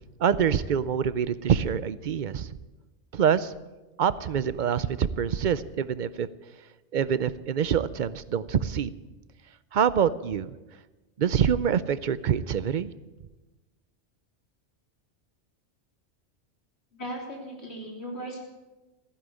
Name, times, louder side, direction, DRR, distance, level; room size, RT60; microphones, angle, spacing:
voice 1, 0.2-2.5 3.1-3.5 4.0-6.3 6.9-8.9 9.7-10.5 11.2-12.9, right 8 dB, 50° right, 16 dB, 0.6 m, -25 dB
voice 2, 16.9-18.4, right 1 dB, 65° left, 0 dB, 3.7 m, -37 dB
15.0 x 10.5 x 8.3 m, 1.1 s
omnidirectional pair, 1.2 m